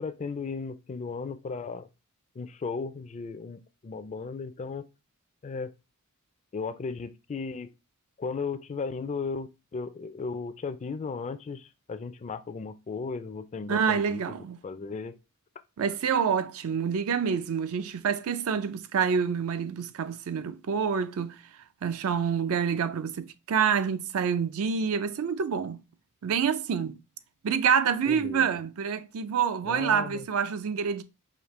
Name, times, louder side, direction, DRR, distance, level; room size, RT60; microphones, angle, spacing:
voice 1, 0.0-1.9 2.4-4.8 5.4-5.7 6.5-7.7 8.2-15.2 28.1-28.6 29.6-30.3, left 4 dB, 30° left, 0.4 m, -36 dB
voice 2, 13.7-14.6 15.8-21.4 21.8-25.8 26.2-26.9 27.4-31.0, right 6 dB, 70° right, 0.4 m, -27 dB
5.1 x 2.8 x 3.0 m
head